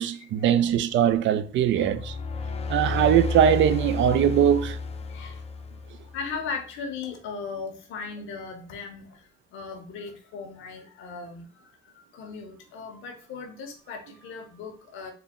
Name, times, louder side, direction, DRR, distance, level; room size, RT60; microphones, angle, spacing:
voice 1, 0.0-2.1 2.7-4.8, right 9 dB, 70° right, 0.4 m, -21 dB
sound 1, 1.6-6.3, left 4 dB, 30° left, 0.5 m, -32 dB
voice 2, 5.1-5.4 6.0-15.1, left 5 dB, 90° left, 1.0 m, -38 dB
3.8 x 2.2 x 3.6 m
cardioid pair, 90°, 20 cm